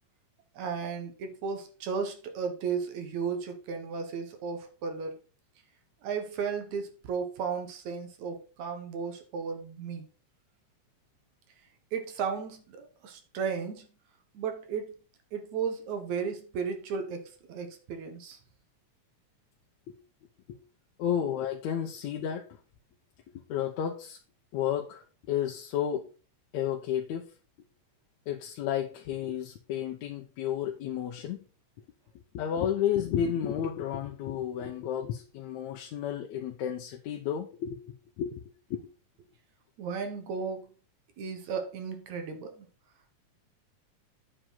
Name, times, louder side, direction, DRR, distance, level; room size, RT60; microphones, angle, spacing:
voice 1, 0.5-5.1 6.0-10.0 11.9-13.9 14.3-14.9 15.3-18.4 39.8-40.7 41.2-42.7, right 6 dB, 75° right, 2.7 m, -34 dB
voice 2, 21.0-22.6 23.5-24.2 24.5-26.1 26.5-27.3 28.3-31.4 32.3-38.9, left 9 dB, 75° left, 2.1 m, -32 dB
8.9 x 5.0 x 5.7 m
omnidirectional pair, 3.4 m